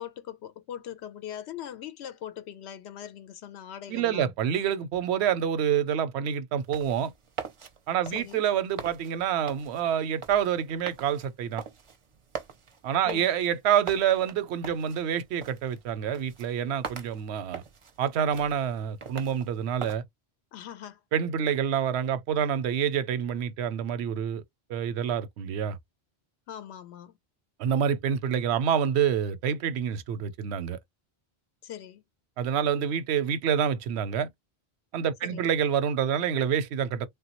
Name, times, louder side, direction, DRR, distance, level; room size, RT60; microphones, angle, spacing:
voice 1, 0.0-4.3 8.1-8.5 13.1-13.3 20.5-21.0 26.5-27.2 31.6-32.0 35.2-35.5, left 10 dB, 85° left, 0.8 m, -41 dB
voice 2, 3.9-7.1 7.9-11.6 12.8-17.6 18.0-20.0 21.1-24.4 24.7-25.8 27.6-30.8 32.4-34.3 34.9-37.1, right 8 dB, 85° right, 0.8 m, -27 dB
sound 1, 6.6-20.0, right 6 dB, 45° right, 0.4 m, -43 dB
3.4 x 2.2 x 2.9 m
omnidirectional pair, 1.1 m